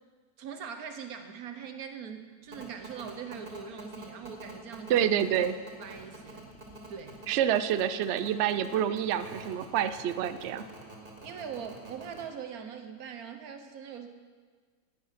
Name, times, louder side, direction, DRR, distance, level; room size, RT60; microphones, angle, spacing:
voice 1, 0.4-5.1 5.8-6.4 6.9-7.2 11.2-14.1, right 7 dB, 65° right, 7 dB, 1.4 m, -42 dB
sound 1, 2.5-12.2, right 2 dB, 30° right, 2.2 m, -46 dB
voice 2, 4.9-5.6 7.3-10.6, right 10 dB, 85° right, 12 dB, 0.6 m, -27 dB
10.5 x 9.7 x 5.9 m, 1.5 s
omnidirectional pair, 1.8 m